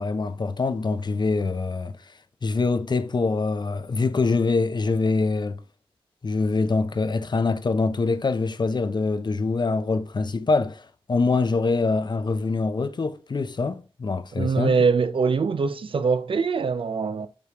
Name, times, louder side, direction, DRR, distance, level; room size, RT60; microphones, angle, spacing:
voice 1, 0.0-1.9 2.4-5.6 6.2-10.8 11.1-14.7, left 3 dB, 45° left, 0.5 m, -24 dB
voice 2, 14.4-17.3, right 5 dB, 60° right, 0.4 m, -23 dB
4.9 x 3.3 x 2.8 m
cardioid pair, 45°, 10 cm